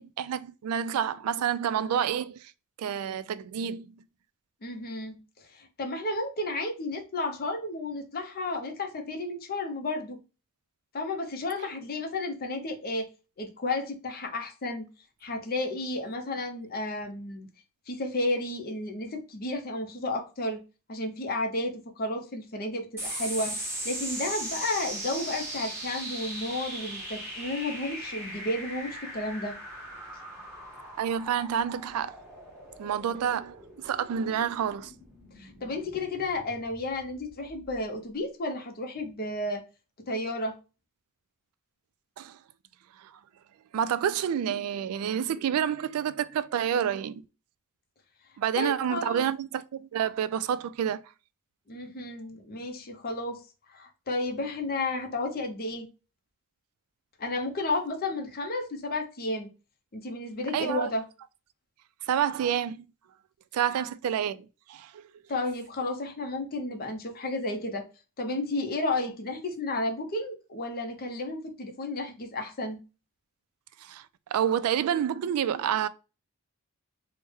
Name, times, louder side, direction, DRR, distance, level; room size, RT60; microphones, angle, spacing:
voice 1, 0.0-2.5 2.8-3.9 31.0-32.2 32.8-34.9 42.2-42.4 43.0-43.1 43.7-47.2 48.4-51.0 60.5-60.9 62.1-62.8 63.5-65.1 73.8-74.0 74.3-75.9, right 9 dB, 80° right, 0.3 m, -29 dB
voice 2, 4.6-10.2 10.9-13.1 13.4-14.9 15.2-17.5 17.9-20.6 20.9-29.6 35.4-39.6 40.1-40.6 48.6-49.2 51.7-53.4 53.7-55.9 57.2-59.5 59.9-61.0 65.3-67.9 68.2-72.8, left 2 dB, 45° left, 0.6 m, -32 dB
sound 1, 23.0-37.8, right 1 dB, 10° right, 1.0 m, -39 dB
3.2 x 2.1 x 3.4 m
head